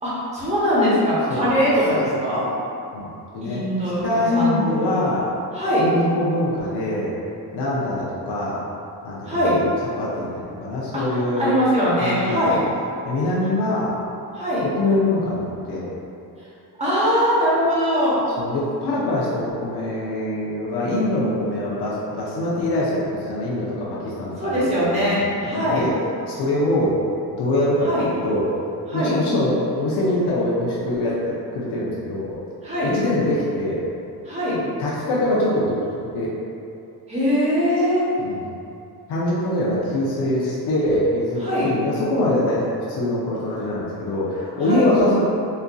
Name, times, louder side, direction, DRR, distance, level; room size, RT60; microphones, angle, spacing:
voice 1, 0.0-2.4 3.4-4.5 5.5-5.9 9.2-9.6 10.9-11.0 11.4-12.6 14.3-14.6 16.8-18.2 24.4-25.8 27.8-28.1 28.9-29.2 32.6-32.9 34.2-34.6 37.1-38.0 41.4-41.7 44.6-44.9, equal, 15° right, -9 dB, 1.0 m, -21 dB
voice 2, 2.9-3.6 4.0-5.2 5.8-7.1 7.5-8.6 9.0-9.5 10.0-11.5 12.0-12.5 13.1-13.9 14.6-15.9 18.4-26.0 26.3-27.0 27.3-28.5 28.9-32.4 32.8-33.8 34.8-35.8 36.1-36.3 38.2-38.5 39.1-45.2, left 1 dB, 75° left, -7 dB, 0.7 m, -23 dB
4.2 x 2.5 x 2.3 m, 2.7 s
cardioid pair, 135°, 40 cm